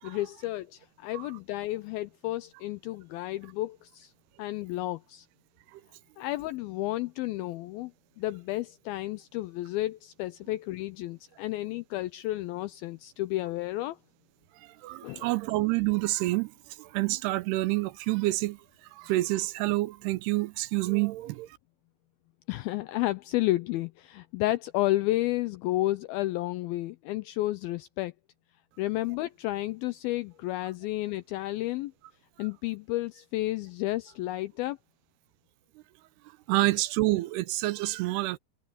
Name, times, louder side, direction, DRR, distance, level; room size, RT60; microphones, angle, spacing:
voice 1, 0.0-4.1 4.4-5.3 6.2-7.9 8.2-14.0 15.0-15.3 22.5-28.1 28.8-31.9 32.4-34.8, left 17 dB, 85° left, 2.1 m, -31 dB
voice 2, 14.6-21.6 36.5-38.4, right 19 dB, 80° right, 2.6 m, -28 dB
omnidirectional pair, 4.8 m